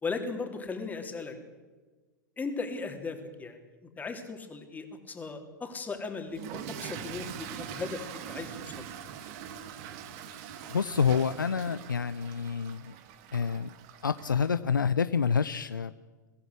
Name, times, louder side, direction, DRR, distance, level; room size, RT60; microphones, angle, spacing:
voice 1, 0.0-1.4 2.4-8.0 8.3-8.9, left 4 dB, 15° left, 4 dB, 3.5 m, -37 dB
Toilet flush / Fill (with liquid), 6.3-14.6, right 9 dB, 50° right, 2.2 m, -43 dB
voice 2, 10.7-12.9 13.3-13.7 14.0-15.9, left 6 dB, 85° left, 13 dB, 0.6 m, -28 dB
23.0 x 16.0 x 8.4 m, 1.3 s
figure-of-eight pair, 100°, 10 cm